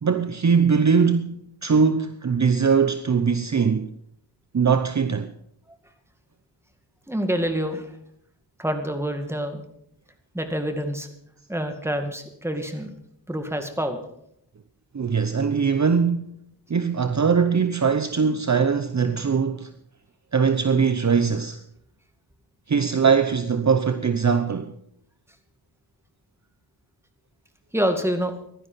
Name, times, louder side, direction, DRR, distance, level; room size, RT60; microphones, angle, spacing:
voice 1, 0.0-3.9 4.5-5.3 14.9-16.3 16.7-19.7 20.3-21.6 22.7-24.8, right 6 dB, 40° right, 0.9 m, -21 dB
voice 2, 7.1-8.0 8.6-9.6 10.3-11.1 11.5-12.9 13.3-14.0 27.7-28.4, equal, 5° right, 2.2 m, -27 dB
16.0 x 12.0 x 5.7 m
wide cardioid pair, 85°, 44 cm